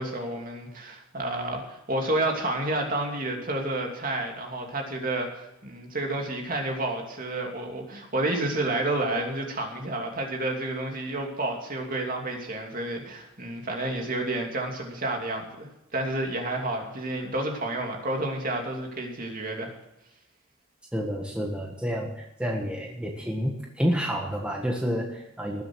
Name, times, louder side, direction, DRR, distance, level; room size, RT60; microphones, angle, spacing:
voice 1, 0.0-19.7, right 2 dB, 40° right, 1 dB, 2.8 m, -30 dB
voice 2, 20.9-25.6, equal, 5° right, 0 dB, 1.5 m, -29 dB
19.5 x 7.8 x 6.2 m, 0.90 s
head